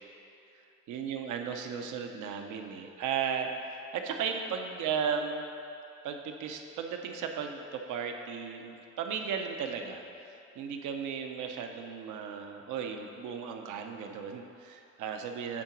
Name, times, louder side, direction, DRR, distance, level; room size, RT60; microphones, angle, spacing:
voice 1, 0.9-5.5 6.0-10.0 10.6-15.6, right 6 dB, 85° right, 4 dB, 0.7 m, -35 dB
8.6 x 3.9 x 5.9 m, 2.7 s
cardioid pair, 90°, 30 cm